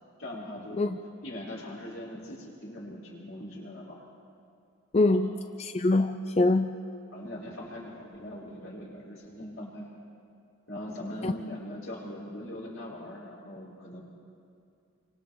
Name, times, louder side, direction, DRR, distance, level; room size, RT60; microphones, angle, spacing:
voice 1, 0.2-0.9 1.2-4.0 5.1-5.2 7.1-9.9 10.7-14.0, left 1 dB, 75° left, -5 dB, 6.1 m, -41 dB
voice 2, 4.9-5.3 5.6-6.8 11.2-11.3, left 2 dB, 30° left, 8 dB, 0.4 m, -24 dB
29.5 x 25.0 x 3.8 m, 2.4 s
head